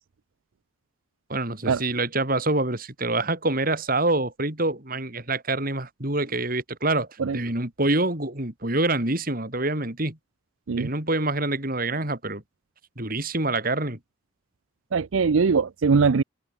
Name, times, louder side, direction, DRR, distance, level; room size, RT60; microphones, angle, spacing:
voice 1, 1.3-10.2 10.8-12.4 13.0-14.0, right 2 dB, 45° right, 4.2 m, -26 dB
voice 2, 14.9-16.2, right 5 dB, 85° right, 0.5 m, -21 dB
open air
head